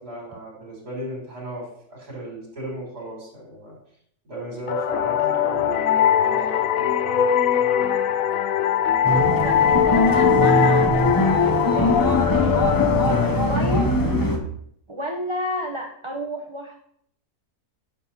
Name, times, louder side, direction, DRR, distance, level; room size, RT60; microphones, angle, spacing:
voice 1, 0.0-3.8 4.2-7.1, right 1 dB, 70° right, -3 dB, 4.4 m, -35 dB
sound 1, 4.7-14.1, left 9 dB, 65° left, 1.0 m, -21 dB
sound 2, 9.0-14.4, equal, 15° left, 0.9 m, -22 dB
voice 2, 9.0-12.0 12.3-12.8 13.1-13.9 14.9-16.8, equal, 25° right, 2 dB, 0.8 m, -31 dB
11.0 x 6.5 x 4.2 m, 0.69 s
omnidirectional pair, 1.7 m